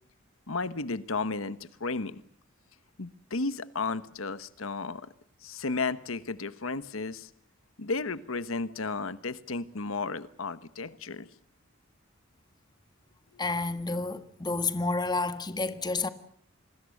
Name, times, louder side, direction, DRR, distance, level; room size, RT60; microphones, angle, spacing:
voice 1, 0.5-2.2 3.0-5.1 5.4-7.3 7.8-11.3, left 3 dB, 85° left, 1.2 m, -33 dB
voice 2, 13.4-16.1, left 3 dB, 20° left, 1.5 m, -30 dB
27.0 x 21.0 x 6.5 m
head